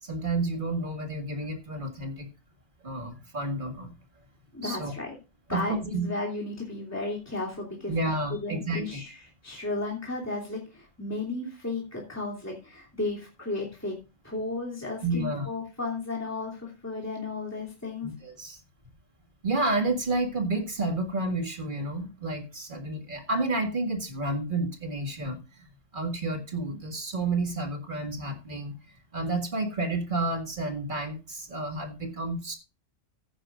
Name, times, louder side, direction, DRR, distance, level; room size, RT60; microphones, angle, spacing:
voice 1, 0.0-2.3 2.8-3.9 4.6-4.9 5.5-6.1 7.9-9.0 15.0-15.5 18.0-18.6 19.4-25.7 25.9-28.7 29.1-32.6, right 2 dB, 40° right, 4 dB, 1.9 m, -30 dB
voice 2, 4.5-5.1 5.5-8.0 8.3-9.2 9.4-14.0 14.2-18.1, left 2 dB, 10° left, -3 dB, 2.8 m, -34 dB
14.0 x 10.5 x 2.5 m, 0.29 s
omnidirectional pair, 1.3 m